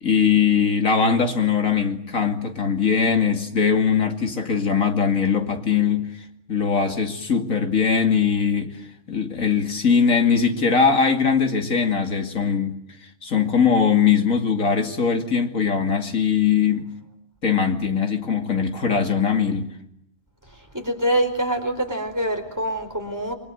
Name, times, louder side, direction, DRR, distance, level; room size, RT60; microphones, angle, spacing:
voice 1, 0.0-6.2 6.5-8.8 9.1-12.8 13.2-16.9 17.4-19.7, left 6 dB, 90° left, 2.9 m, -21 dB
voice 2, 20.7-23.3, right 1 dB, 15° right, 4.5 m, -25 dB
29.5 x 24.0 x 7.9 m
omnidirectional pair, 1.4 m